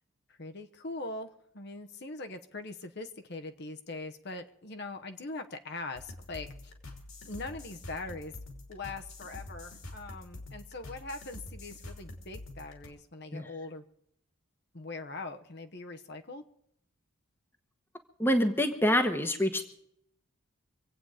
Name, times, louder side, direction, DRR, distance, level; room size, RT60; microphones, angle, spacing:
voice 1, 0.3-6.7 7.3-8.3 8.7-13.8 14.7-16.4, left 2 dB, 50° left, 6 dB, 1.0 m, -42 dB
sound 1, 5.9-12.9, left 2 dB, 70° left, 3.0 m, -46 dB
voice 2, 18.2-19.6, equal, 10° left, 7 dB, 1.1 m, -26 dB
25.5 x 8.9 x 4.9 m, 0.72 s
head